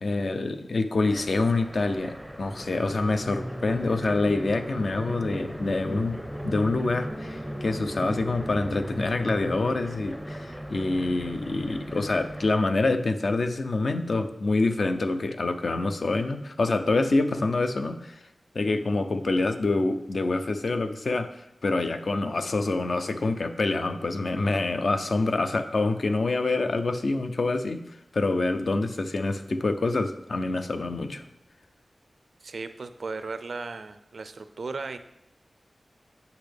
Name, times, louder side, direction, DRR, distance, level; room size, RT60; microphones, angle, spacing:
voice 1, 0.0-6.2 6.4-18.2 18.5-27.8 28.1-31.2, left 3 dB, 60° left, 8 dB, 0.5 m, -26 dB
sound 1, 1.0-12.5, equal, ahead, 0.6 m, -36 dB
voice 2, 32.4-35.0, right 4 dB, 75° right, 10 dB, 0.5 m, -36 dB
8.2 x 6.5 x 3.4 m, 0.85 s
wide cardioid pair, 100°, 0 cm